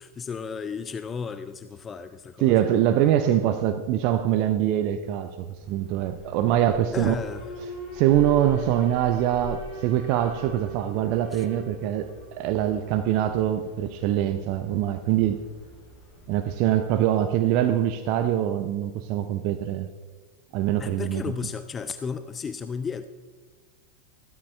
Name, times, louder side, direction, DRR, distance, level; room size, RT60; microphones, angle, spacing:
voice 1, 0.0-2.8 6.9-7.4 11.3-11.4 20.8-23.1, left 5 dB, 20° left, 12 dB, 0.5 m, -34 dB
voice 2, 2.4-5.4 5.7-7.2 7.9-15.4 16.3-19.9 20.5-21.2, right 11 dB, 45° right, 9 dB, 0.6 m, -23 dB
Alarm, 5.5-17.6, left 1 dB, 35° left, 3.8 m, -42 dB
15.0 x 13.0 x 3.3 m, 1.4 s
figure-of-eight pair, 90°, 0 cm